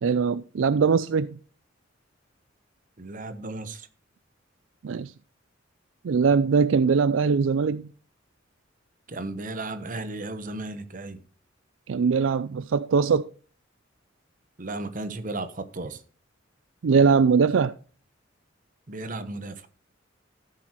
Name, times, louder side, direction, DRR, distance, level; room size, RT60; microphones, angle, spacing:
voice 1, 0.0-1.4 4.8-5.1 6.0-7.9 11.9-13.3 16.8-17.7, right 5 dB, 75° right, 0.4 m, -21 dB
voice 2, 3.0-3.8 9.1-11.2 14.6-16.0 18.9-19.7, right 2 dB, 45° right, 1.1 m, -34 dB
14.0 x 7.7 x 3.0 m
head